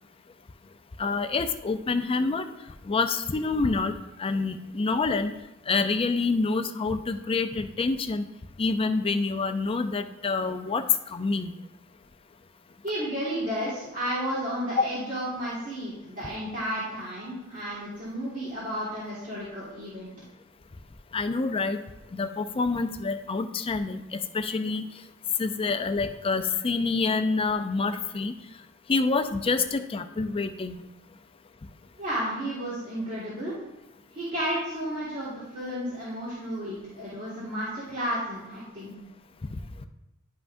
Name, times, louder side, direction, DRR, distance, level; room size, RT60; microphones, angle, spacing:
voice 1, 1.0-2.4 2.9-5.3 5.7-8.2 8.6-10.8 11.1-11.5 14.8-14.9 21.1-21.8 22.1-24.8 25.4-28.3 28.9-30.8 39.5-39.6, left 4 dB, 25° left, 9 dB, 0.4 m, -27 dB
voice 2, 12.8-20.1 32.0-33.5 34.1-38.9, equal, 40° right, -9 dB, 2.0 m, -32 dB
11.0 x 5.6 x 2.6 m, 0.97 s
head